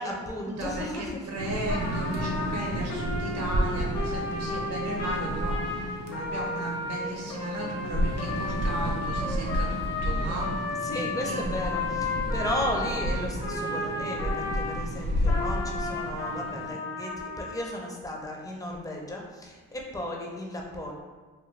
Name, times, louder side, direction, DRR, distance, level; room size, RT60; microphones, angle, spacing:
voice 1, 0.0-1.2 10.1-20.9, left 1 dB, 10° left, 0 dB, 0.5 m, -35 dB
voice 2, 0.6-12.3, right 1 dB, 55° right, -2 dB, 0.7 m, -36 dB
sound 1, 1.4-16.7, equal, 90° right, 0.5 m, -32 dB
Trumpet, 1.7-14.8 15.2-17.8, left 3 dB, 55° left, 0.7 m, -34 dB
2.5 x 2.2 x 3.1 m, 1.3 s
cardioid pair, 90°, 30 cm